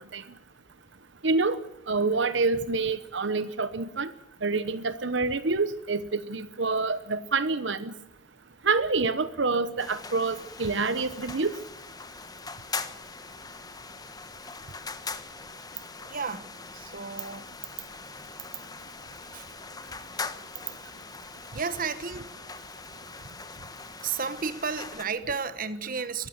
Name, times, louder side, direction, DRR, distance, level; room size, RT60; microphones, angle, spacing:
voice 1, 1.2-1.6 1.9-4.1 4.4-7.9 8.6-11.5, right 3 dB, 70° right, 1.0 m, -27 dB
sound 1, 9.8-25.0, left 4 dB, 20° left, 1.2 m, -41 dB
voice 2, 16.1-16.5 16.7-17.4 19.3-19.5 21.5-22.3 24.0-26.3, right 5 dB, 45° right, 1.2 m, -32 dB
23.0 x 14.5 x 8.1 m
head